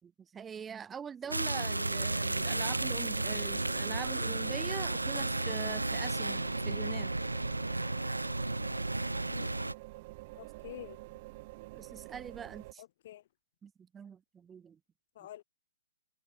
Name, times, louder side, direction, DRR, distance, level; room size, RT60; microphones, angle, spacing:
voice 1, 0.0-7.1 11.7-12.8 13.6-14.8, right 7 dB, 15° right, 4.2 m, -43 dB
sound 1, 1.2-7.2, left 10 dB, 20° left, 2.7 m, -56 dB
sound 2, 1.3-9.7, right 2 dB, 85° right, 1.7 m, -33 dB
sound 3, 1.9-12.7, right 22 dB, 35° right, 5.8 m, -48 dB
voice 2, 10.4-11.0 12.8-13.2 15.2-15.4, left 13 dB, 45° left, 2.2 m, -47 dB
figure-of-eight pair, 125°, 0 cm